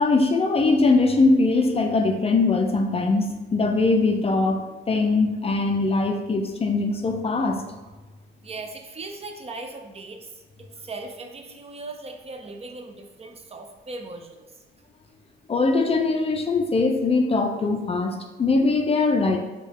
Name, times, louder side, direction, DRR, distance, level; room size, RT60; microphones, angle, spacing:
voice 1, 0.0-7.6 15.5-19.4, left 3 dB, 30° left, 4 dB, 0.4 m, -21 dB
voice 2, 8.4-10.3 10.8-14.4, right 3 dB, 30° right, 4 dB, 0.5 m, -38 dB
4.3 x 2.3 x 3.5 m, 1.2 s
cardioid pair, 90°, 20 cm